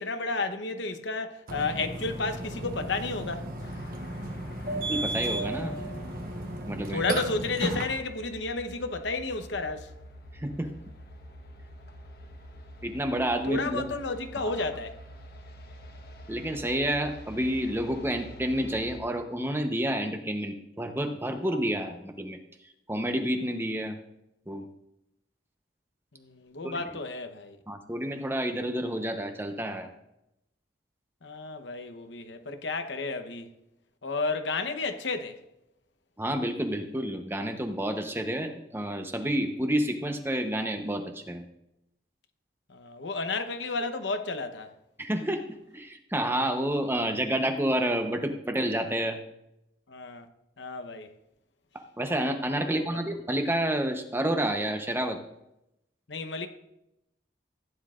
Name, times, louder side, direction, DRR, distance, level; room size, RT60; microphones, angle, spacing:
voice 1, 0.0-3.5 6.9-9.9 13.5-15.0 26.1-27.6 31.2-33.5 34.0-35.4 42.7-44.7 49.9-50.3 50.6-51.1 52.7-52.9 56.1-56.5, left 3 dB, 90° left, 0.9 m, -32 dB
Burping eructation, 1.5-7.8, right 2 dB, 50° right, 1.2 m, -34 dB
sound 1, 3.6-19.0, equal, 55° left, 1.2 m, -47 dB
voice 2, 4.7-5.8 6.7-7.0 10.3-10.7 12.8-13.8 14.4-14.5 16.3-22.4 22.9-23.9 24.5-24.7 26.6-26.8 27.7-29.9 36.2-41.4 45.0-45.4 45.7-49.2 52.0-55.2, right 1 dB, 15° right, 0.8 m, -29 dB
15.5 x 9.7 x 2.5 m
head